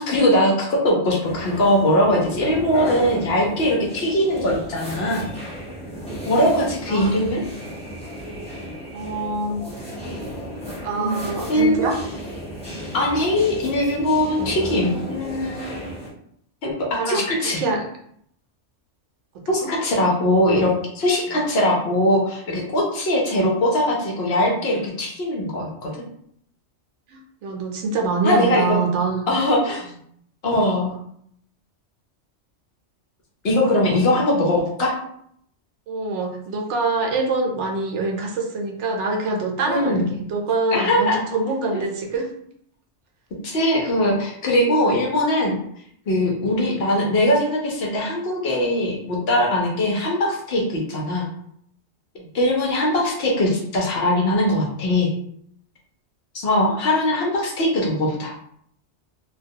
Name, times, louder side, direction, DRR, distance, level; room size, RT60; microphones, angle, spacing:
voice 1, 0.0-5.3 6.3-7.4 10.9-11.1 11.5-11.9 12.9-15.8 16.6-16.7 17.1-17.6 19.5-25.9 28.2-28.8 29.3-29.9 30.4-30.9 33.4-34.9 39.7-40.2 40.7-41.2 43.4-45.6 46.1-51.3 52.3-55.1 56.3-58.3, left 1 dB, 65° left, -2 dB, 0.8 m, -21 dB
sound 1, 1.2-16.1, equal, 5° left, 0.6 m, -34 dB
voice 2, 8.9-9.7 10.8-12.0 16.9-17.8 19.6-19.7 27.1-29.3 33.9-34.0 35.9-42.3 52.2-52.3 56.7-56.8, right 3 dB, 80° right, 1 dB, 0.9 m, -25 dB
2.2 x 2.2 x 2.7 m, 0.69 s
omnidirectional pair, 1.2 m